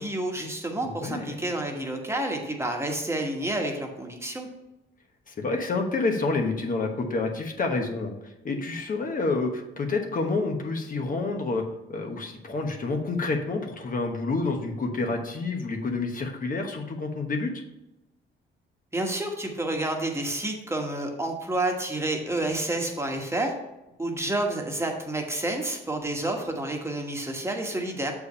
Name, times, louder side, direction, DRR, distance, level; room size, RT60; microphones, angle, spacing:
voice 1, 0.0-4.5 18.9-23.5 24.0-28.1, right 1 dB, 15° right, 2 dB, 1.3 m, -29 dB
voice 2, 1.0-1.3 5.3-8.1 8.4-11.6 11.9-17.5, left 3 dB, 45° left, 3 dB, 1.1 m, -28 dB
6.8 x 4.7 x 5.4 m, 0.94 s
cardioid pair, 90°, 20 cm